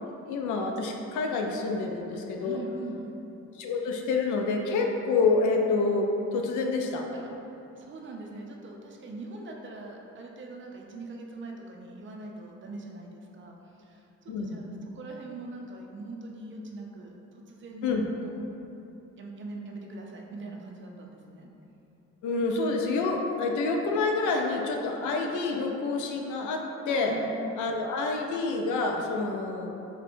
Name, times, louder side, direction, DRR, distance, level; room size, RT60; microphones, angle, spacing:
voice 1, 0.0-2.6 3.6-7.1 14.3-14.7 17.8-18.1 22.2-27.2 27.6-29.7, left 3 dB, 80° left, 2 dB, 0.5 m, -28 dB
voice 2, 2.4-3.2 7.1-7.3 7.8-18.4 19.2-21.5 24.8-24.9 27.1-27.4, right 2 dB, 40° right, 0 dB, 0.5 m, -42 dB
4.3 x 2.1 x 2.6 m, 2.9 s
cardioid pair, 90°, 30 cm